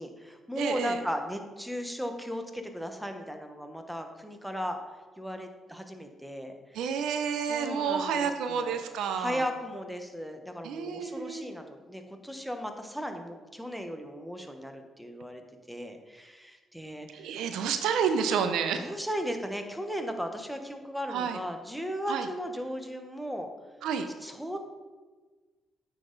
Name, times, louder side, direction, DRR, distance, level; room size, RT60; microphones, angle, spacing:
voice 1, 0.0-4.8 5.2-6.8 7.5-8.8 9.1-17.4 18.8-23.5 24.2-24.6, equal, ahead, 5 dB, 1.0 m, -36 dB
voice 2, 0.6-1.0 6.7-9.4 10.6-11.5 17.1-18.9 21.1-21.4 22.1-22.3 23.8-24.1, right 7 dB, 80° right, 8 dB, 0.5 m, -29 dB
9.0 x 4.0 x 3.9 m, 1.4 s
supercardioid pair, 65°, 0 cm